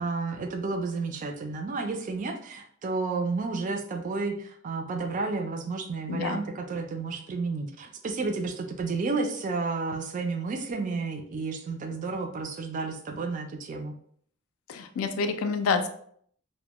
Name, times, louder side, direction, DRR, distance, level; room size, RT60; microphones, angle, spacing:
voice 1, 0.0-13.9, right 3 dB, 35° right, 4 dB, 0.3 m, -31 dB
voice 2, 6.1-6.4 14.7-15.9, left 4 dB, 75° left, 7 dB, 0.3 m, -28 dB
2.1 x 2.1 x 2.8 m, 0.62 s
head